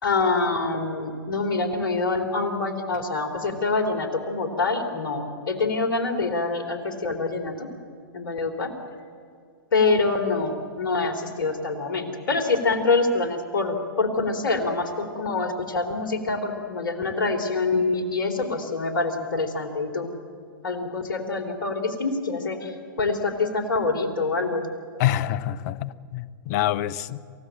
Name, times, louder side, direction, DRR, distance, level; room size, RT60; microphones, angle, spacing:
voice 1, 0.0-7.7 8.1-8.7 9.7-20.1 20.6-24.7, left 3 dB, 70° left, 5 dB, 3.7 m, -25 dB
voice 2, 25.0-27.2, left 12 dB, 50° left, 19 dB, 0.9 m, -26 dB
27.5 x 16.0 x 8.9 m, 2.3 s
hypercardioid pair, 110°, 12 cm